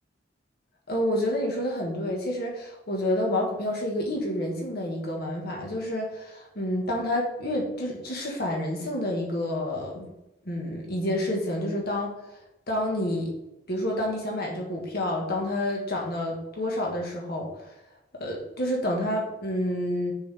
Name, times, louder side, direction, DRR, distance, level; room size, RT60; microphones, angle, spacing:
voice 1, 0.9-10.1 10.4-12.1 12.7-13.4 13.7-17.7 18.1-20.1, left 1 dB, 55° left, -1 dB, 1.7 m, -29 dB
6.8 x 5.9 x 3.6 m, 0.90 s
head